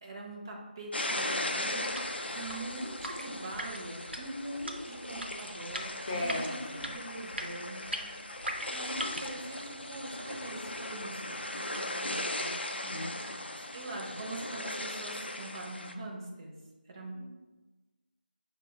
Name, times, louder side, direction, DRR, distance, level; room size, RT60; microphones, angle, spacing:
voice 1, 0.0-2.0 2.3-8.4 8.7-12.5 13.2-13.3 13.7-16.6 16.9-17.2, right 1 dB, 25° right, 0 dB, 0.4 m, -43 dB
sound 1, 0.9-15.9, left 1 dB, 85° left, 0.4 m, -38 dB
sound 2, 1.8-9.4, right 1 dB, 90° right, 0.5 m, -41 dB
voice 2, 6.1-6.9 12.7-13.1, left 1 dB, 30° left, -2 dB, 0.5 m, -36 dB
5.2 x 2.1 x 3.4 m, 1.2 s
figure-of-eight pair, 165°, 6 cm